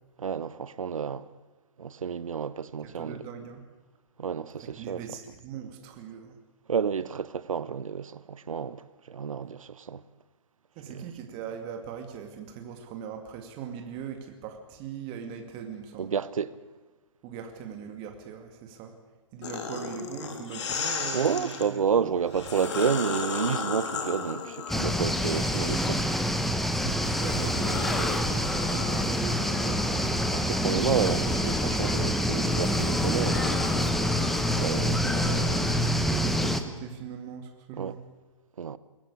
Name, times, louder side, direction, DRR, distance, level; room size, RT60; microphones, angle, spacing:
voice 1, 0.2-1.3 1.8-3.2 4.2-5.0 6.7-8.8 9.1-10.0 10.9-11.0 16.0-16.6 21.1-26.0 27.1-27.2 29.9-30.0 30.3-33.6 34.6-35.6 37.7-37.9 38.6-38.8, right 7 dB, 80° right, 1.0 m, -30 dB
voice 2, 2.8-3.6 4.6-6.4 10.8-16.1 17.2-18.9 19.3-22.1 26.8-30.1 35.5-35.8 36.1-38.0, right 7 dB, 30° right, 2.4 m, -40 dB
sound 1, 19.4-21.7 22.3-26.4 26.8-36.0, left 5 dB, 60° left, 3.6 m, -36 dB
sound 2, 24.7-36.6, equal, ahead, 1.1 m, -26 dB
22.5 x 16.0 x 8.5 m
hypercardioid pair, 135°, 17 cm